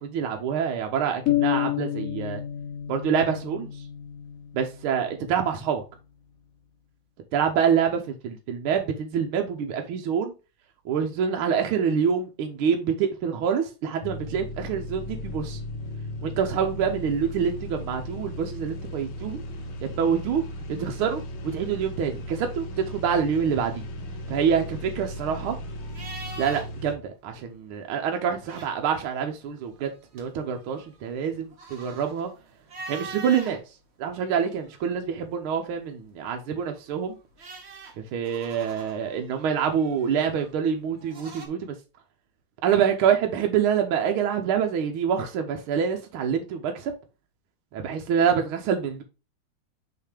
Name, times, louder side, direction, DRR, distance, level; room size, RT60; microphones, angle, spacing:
voice 1, 0.0-2.4 2.9-3.8 4.5-5.8 7.3-10.3 10.9-15.6 16.2-19.4 20.0-20.4 20.8-21.2 21.5-23.8 24.3-25.6 26.4-32.3 32.9-33.6 34.0-37.2 38.1-41.8 42.6-46.9 47.7-49.0, right 7 dB, 80° right, 1.6 m, -26 dB
sound 1, 1.3-5.0, left 13 dB, 90° left, 0.7 m, -29 dB
sound 2, 14.0-26.9, left 1 dB, 60° left, 1.4 m, -36 dB
sound 3, 24.4-26.9 27.2-27.4 28.2-29.1 29.6-33.6 34.1-35.1 36.6-41.5, right 3 dB, 40° right, 1.0 m, -44 dB
5.9 x 3.7 x 4.9 m
omnidirectional pair, 2.3 m